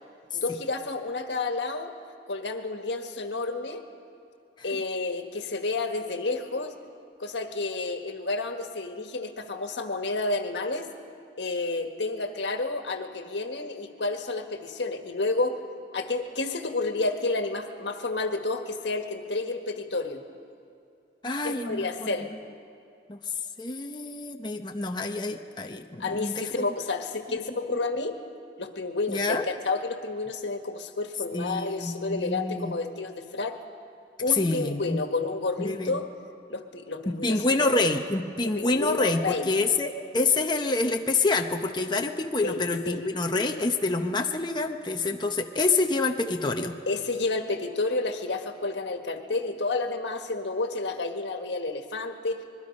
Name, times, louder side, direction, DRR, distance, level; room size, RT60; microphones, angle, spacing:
voice 1, 0.3-1.9 2.3-3.8 4.6-6.7 7.2-10.9 11.4-15.6 15.9-20.2 21.4-22.3 26.0-28.2 28.6-33.6 34.2-36.1 36.5-37.7 38.4-39.5 42.4-43.0 46.9-52.4, left 3 dB, 90° left, 6 dB, 1.6 m, -30 dB
voice 2, 21.2-22.1 23.1-23.2 23.6-26.6 27.7-27.8 29.1-29.4 31.3-32.7 34.3-35.0 35.6-36.0 37.1-46.8, left 3 dB, 25° left, 3 dB, 0.9 m, -27 dB
26.0 x 21.5 x 5.4 m, 2.6 s
head